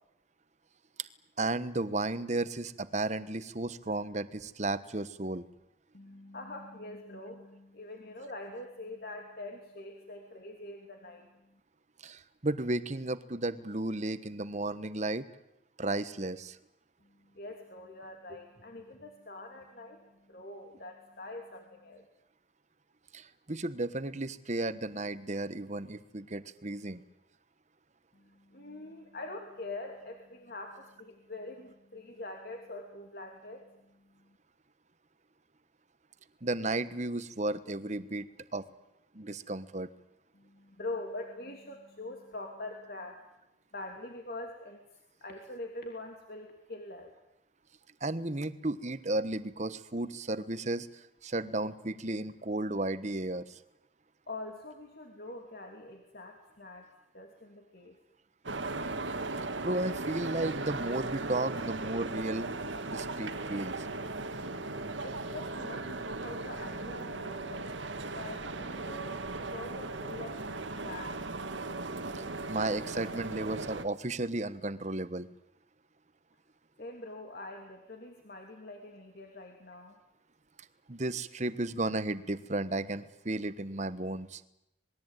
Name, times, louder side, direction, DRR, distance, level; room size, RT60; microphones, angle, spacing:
voice 1, 1.4-5.4 12.0-15.3 15.8-16.6 23.1-27.0 36.4-38.3 38.5-38.6 39.1-39.9 48.0-50.9 51.2-53.6 59.6-62.5 62.9-63.9 72.1-75.3 80.9-84.4, right 2 dB, 40° right, 13 dB, 1.2 m, -34 dB
voice 2, 5.9-11.3 17.3-22.0 28.1-34.1 40.3-43.2 43.7-44.8 45.2-47.1 54.3-58.0 65.0-67.7 68.1-70.4 70.8-71.1 76.8-79.9, left 2 dB, 55° left, 3 dB, 2.9 m, -44 dB
sound 1, 58.5-73.9, right 3 dB, 75° right, 2.0 m, -37 dB
27.0 x 21.0 x 9.1 m, 0.88 s
head